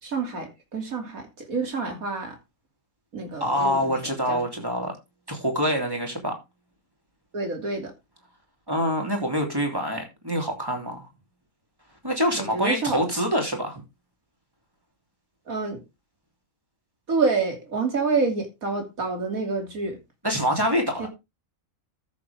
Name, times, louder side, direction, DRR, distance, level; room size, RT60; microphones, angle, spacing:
voice 1, 0.0-2.4 3.1-4.0 4.3-4.4 7.3-7.9 12.3-13.0 15.5-15.8 17.1-20.0 21.0-21.1, right 4 dB, 80° right, 3.2 m, -28 dB
voice 2, 3.4-4.9 5.3-6.3 8.7-11.1 12.0-13.8 20.2-21.1, equal, 15° right, 3.0 m, -25 dB
13.5 x 7.3 x 3.5 m
omnidirectional pair, 1.5 m